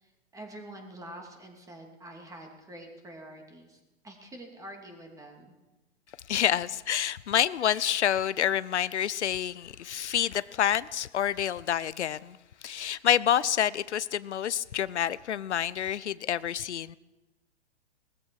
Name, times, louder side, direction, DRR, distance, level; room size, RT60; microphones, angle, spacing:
voice 1, 0.0-5.5, right 1 dB, 10° right, 2.6 m, -46 dB
voice 2, 6.3-12.4 12.6-17.0, left 10 dB, 90° left, 0.6 m, -28 dB
18.5 x 14.0 x 4.7 m
hypercardioid pair, 120°, 33 cm